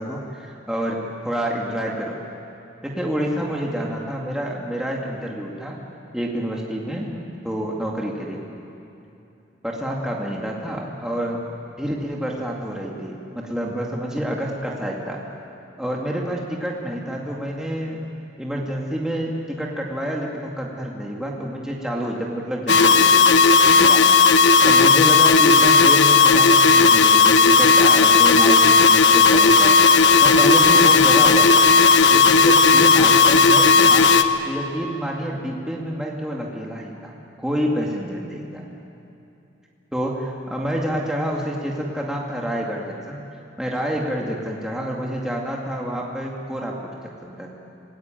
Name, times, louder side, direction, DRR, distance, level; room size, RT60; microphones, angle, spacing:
voice 1, 0.0-2.2 2.8-5.8 6.1-7.2 7.4-8.4 9.6-11.4 11.8-15.2 15.8-18.0 18.4-24.0 24.6-29.8 30.2-31.7 32.1-34.1 34.4-37.1 37.4-38.6 39.9-43.2 43.6-47.5, equal, 5° right, -2 dB, 2.3 m, -28 dB
sound 1, 22.7-34.2, left 4 dB, 75° left, 1.1 m, -14 dB
27.0 x 19.0 x 9.2 m, 2.8 s
head